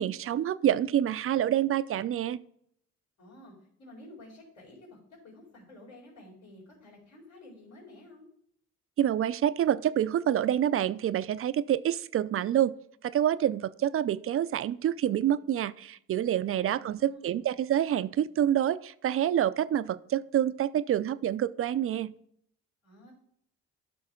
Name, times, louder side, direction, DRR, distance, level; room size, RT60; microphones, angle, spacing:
voice 1, 0.0-2.4 9.0-12.7 13.0-22.1, right 11 dB, 45° right, 15 dB, 0.4 m, -27 dB
voice 2, 3.2-8.3 16.4-17.5 22.8-23.1, left 1 dB, 65° left, -8 dB, 4.3 m, -51 dB
11.5 x 6.0 x 3.8 m, 0.68 s
cardioid pair, 90°, 30 cm